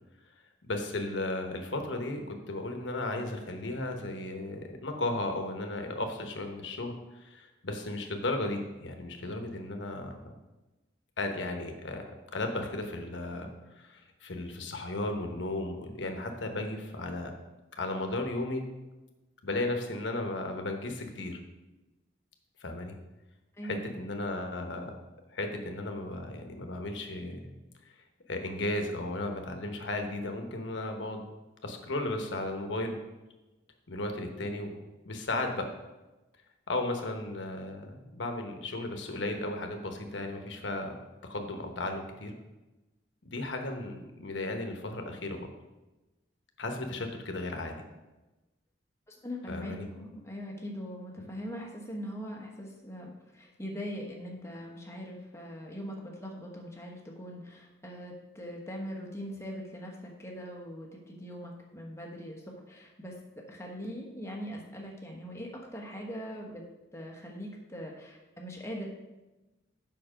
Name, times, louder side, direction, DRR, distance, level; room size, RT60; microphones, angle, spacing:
voice 1, 0.6-10.1 11.2-12.1 12.3-17.3 17.7-18.7 19.4-21.4 22.6-22.9 23.6-25.0 25.3-27.4 28.3-31.2 31.6-33.0 33.9-34.8 35.0-35.7 36.7-41.0 41.3-42.3 43.2-45.5 46.6-47.7 49.5-49.9, left 2 dB, 80° left, 4 dB, 1.1 m, -35 dB
voice 2, 23.6-24.2 49.1-63.2 63.5-66.6 66.9-68.8, equal, 15° left, -1 dB, 1.2 m, -41 dB
7.5 x 5.7 x 5.0 m, 1.1 s
head